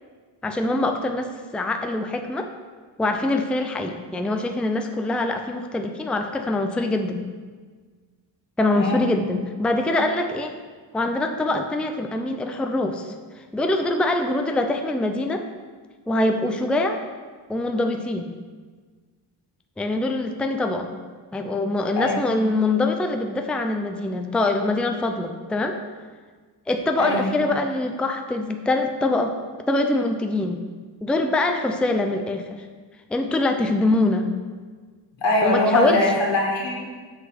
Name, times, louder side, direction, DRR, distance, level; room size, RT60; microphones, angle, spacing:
voice 1, 0.4-2.5 3.0-7.2 8.6-10.5 10.9-15.4 16.1-17.0 17.5-18.3 19.8-20.9 21.3-25.8 26.7-29.3 29.7-30.6 31.0-32.6 33.1-34.3 35.4-36.0, left 2 dB, ahead, 5 dB, 0.4 m, -24 dB
voice 2, 8.8-9.1 22.0-22.1 27.0-27.3 35.2-36.7, left 2 dB, 80° left, -3 dB, 2.2 m, -21 dB
8.3 x 4.1 x 5.7 m, 1.5 s
wide cardioid pair, 110°, 44 cm